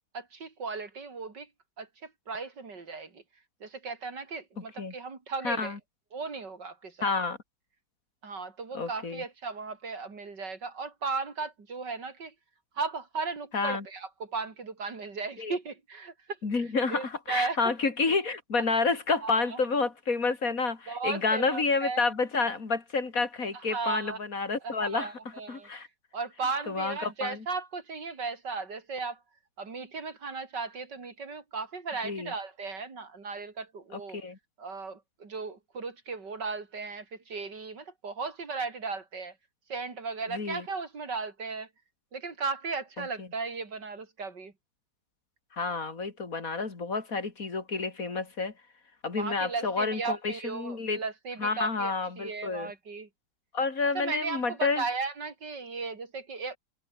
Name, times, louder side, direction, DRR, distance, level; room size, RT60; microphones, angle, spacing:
voice 1, 0.1-1.5 1.8-3.2 3.6-5.8 6.1-7.1 8.2-12.3 12.7-17.7 19.1-19.6 20.9-22.0 23.5-24.2 24.6-25.7 26.1-29.2 29.6-34.2 34.6-39.4 39.7-41.7 42.1-44.5 49.1-53.1 53.9-56.6, right 4 dB, 90° right, 4.0 m, -36 dB
voice 2, 5.4-5.8 7.0-7.4 8.7-9.2 13.5-13.8 15.4-15.6 16.4-25.1 25.5-25.9 26.7-27.4 32.0-32.3 33.9-34.4 40.3-40.6 43.0-43.3 45.5-48.5 49.0-51.0 51.4-52.7 53.5-54.8, left 4 dB, 55° left, 3.0 m, -29 dB
omnidirectional pair, 1.8 m